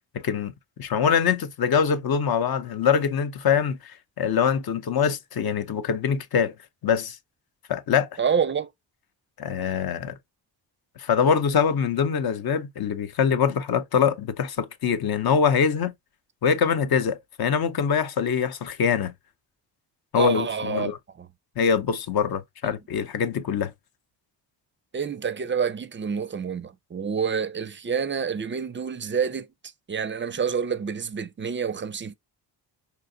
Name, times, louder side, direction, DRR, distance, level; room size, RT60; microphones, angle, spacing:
voice 1, 0.1-0.5 0.8-6.5 6.8-7.2 7.7-8.2 9.4-10.1 11.0-15.9 16.4-19.1 20.1-21.0 21.6-23.7, left 7 dB, 55° left, 0.7 m, -24 dB
voice 2, 8.2-8.7 20.1-20.9 21.2-21.3 22.6-22.7 24.9-29.5 29.9-32.1, right 6 dB, 30° right, 0.4 m, -28 dB
4.4 x 2.8 x 2.6 m
cardioid pair, 100°, 44 cm